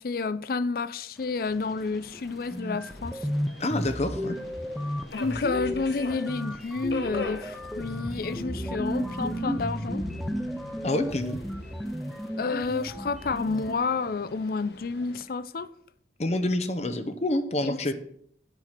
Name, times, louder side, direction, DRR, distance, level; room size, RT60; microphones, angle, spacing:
voice 1, 0.0-3.2 5.1-10.0 12.4-15.7 17.6-17.9, left 4 dB, 55° left, 0.4 m, -30 dB
Subway metro underground, 1.5-15.2, left 3 dB, 70° left, 1.1 m, -44 dB
sound 1, 2.1-2.2 2.5-13.7, equal, ahead, 0.5 m, -34 dB
voice 2, 3.6-4.4 10.8-11.4 16.2-17.9, left 1 dB, 40° left, 0.8 m, -27 dB
sound 2, 7.2-11.6, equal, 20° left, 1.2 m, -40 dB
9.0 x 5.9 x 6.5 m
head